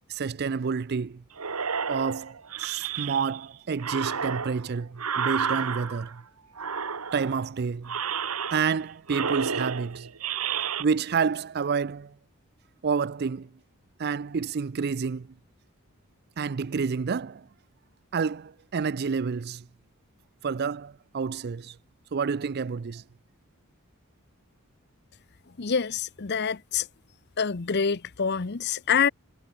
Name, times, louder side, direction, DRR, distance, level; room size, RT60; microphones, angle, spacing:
voice 1, 0.1-1.2 1.9-6.2 7.1-8.0 8.5-10.1 10.8-12.1 12.8-13.5 14.0-15.3 16.4-17.4 18.1-19.6 20.4-21.8 22.1-23.0, right 5 dB, 45° right, 0.4 m, -29 dB
sound 1, 1.4-3.5 3.8-6.2 6.6-7.5 7.8-8.8 9.1-10.8, right 6 dB, 90° right, 1.6 m, -31 dB
voice 2, 25.6-26.9 27.4-29.1, left 6 dB, 50° left, 0.8 m, -26 dB
head